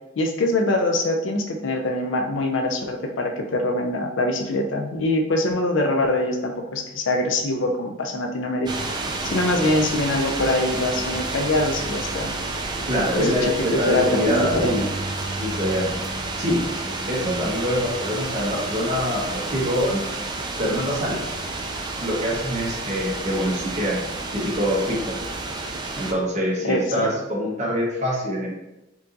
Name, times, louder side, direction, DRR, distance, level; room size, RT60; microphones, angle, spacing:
voice 1, 0.2-8.7 9.2-12.3 13.2-13.5 13.9-14.8 26.6-27.1, left 2 dB, 70° left, 3 dB, 0.5 m, -23 dB
sound 1, 8.7-26.1, right 2 dB, 20° right, 0.3 m, -30 dB
voice 2, 12.9-14.9 15.4-15.9 16.4-16.6 17.1-20.0 20.6-21.2 22.0-24.0 24.3-25.1 26.0-28.5, equal, 40° right, -4 dB, 1.1 m, -24 dB
4.5 x 2.8 x 2.6 m, 0.94 s
head